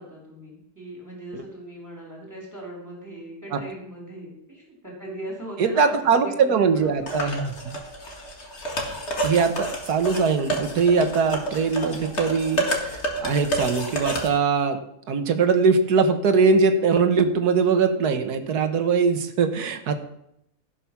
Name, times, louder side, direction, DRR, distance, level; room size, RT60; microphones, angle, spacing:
voice 1, 0.0-7.2, right 1 dB, 10° right, -3 dB, 3.4 m, -39 dB
voice 2, 5.6-7.8 9.2-14.8 15.1-19.9, right 5 dB, 75° right, 7 dB, 1.7 m, -21 dB
sound 1, 7.1-14.3, right 1 dB, 45° left, 2.2 m, -29 dB
16.0 x 6.0 x 5.9 m, 0.78 s
omnidirectional pair, 1.7 m